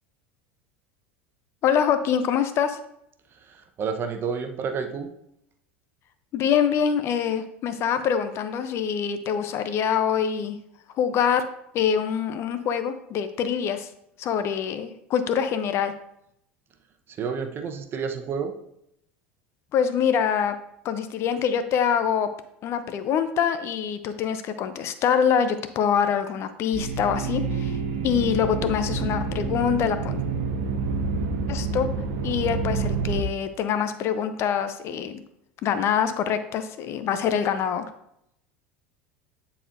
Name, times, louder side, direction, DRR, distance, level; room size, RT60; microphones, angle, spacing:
voice 1, 1.6-2.8 6.3-10.6 11.0-11.5 11.7-13.9 14.2-15.9 19.7-20.5 20.8-22.3 22.6-27.8 28.0-30.2 31.5-31.9 32.2-35.2 35.6-37.8, left 8 dB, 45° left, 10 dB, 0.6 m, -25 dB
voice 2, 3.3-5.1 17.1-18.5, right 6 dB, 40° right, 6 dB, 0.9 m, -30 dB
sound 1, 26.7-33.2, right 4 dB, 65° right, 0.7 m, -28 dB
9.8 x 4.2 x 2.6 m, 0.76 s
hypercardioid pair, 75°, 6 cm